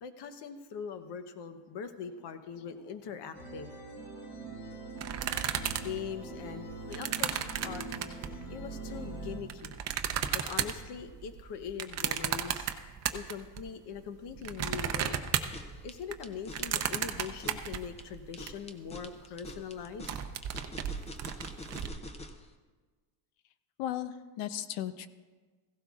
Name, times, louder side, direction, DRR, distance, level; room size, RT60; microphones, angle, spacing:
voice 1, 0.0-3.7 5.8-8.2 8.5-9.7 10.3-12.7 13.1-15.2 15.8-20.2, left 7 dB, 55° left, 9 dB, 1.0 m, -42 dB
sound 1, 3.3-9.4, right 3 dB, 40° left, 4.2 m, -43 dB
sound 2, 5.0-8.4 9.1-13.6 14.0-18.5 18.9-19.0 19.2-19.5 19.8-21.9, right 9 dB, 35° right, 0.6 m, -34 dB
sound 3, 15.5-22.5, left 1 dB, 15° left, 0.4 m, -46 dB
voice 2, 23.8-25.1, left 11 dB, 85° left, 13 dB, 0.8 m, -36 dB
16.5 x 16.0 x 2.4 m, 1.4 s
cardioid pair, 155°, 47 cm